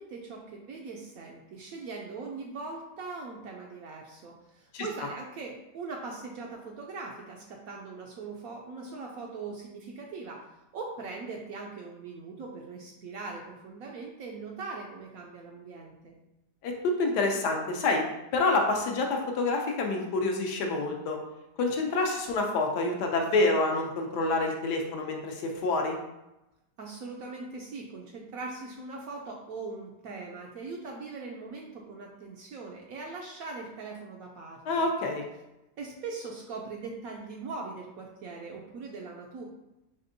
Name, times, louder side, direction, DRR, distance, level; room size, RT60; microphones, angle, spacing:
voice 1, 0.0-10.4 10.7-16.1 26.8-34.9 35.8-39.4, right 4 dB, 70° right, -1 dB, 0.8 m, -41 dB
voice 2, 17.0-18.0 18.3-21.2 21.6-26.0 34.7-35.2, left 3 dB, 75° left, 2 dB, 1.2 m, -27 dB
4.2 x 3.4 x 2.6 m, 0.93 s
omnidirectional pair, 1.9 m